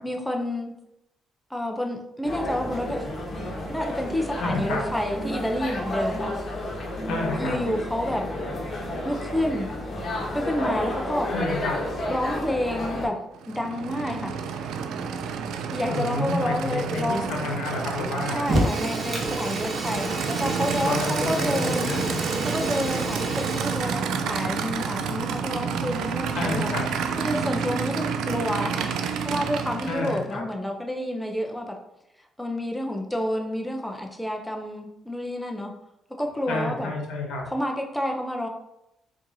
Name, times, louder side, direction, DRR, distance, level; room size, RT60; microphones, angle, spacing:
voice 1, 0.0-0.7 1.5-3.1 3.7-6.3 7.4-8.3 9.0-9.7 10.3-11.3 12.1-13.2 13.5-14.3 15.7-17.4 18.3-21.9 22.4-26.7 27.2-28.9 29.2-31.8 32.4-35.7 36.2-36.9 37.5-38.5, left 1 dB, 5° left, 2 dB, 0.5 m, -29 dB
sound 1, 2.2-13.1, left 1 dB, 45° left, 1.0 m, -31 dB
voice 2, 4.4-4.8 7.1-7.6 11.3-11.8 15.9-18.5 20.8-22.2 26.3-26.9 29.9-30.4 36.5-37.4, left 3 dB, 85° left, 1 dB, 0.9 m, -30 dB
Aircraft / Idling, 13.4-30.3, right 6 dB, 85° right, 0.3 m, -30 dB
Fire, 18.4-24.0, right 1 dB, 35° right, 0.9 m, -29 dB
4.5 x 2.6 x 2.7 m, 0.86 s
cardioid pair, 90°, 0 cm